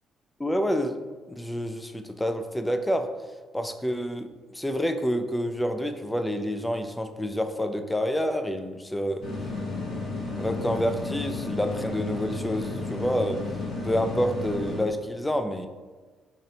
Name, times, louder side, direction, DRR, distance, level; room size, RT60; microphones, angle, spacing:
voice 1, 0.4-1.0 1.3-3.1 3.5-4.3 4.5-9.2 10.4-13.4 13.8-15.7, equal, 10° left, 8 dB, 0.4 m, -28 dB
sound 1, 9.2-14.8, left 3 dB, 65° left, 0.9 m, -32 dB
4.4 x 2.8 x 2.8 m, 1.4 s
supercardioid pair, 55°, 0 cm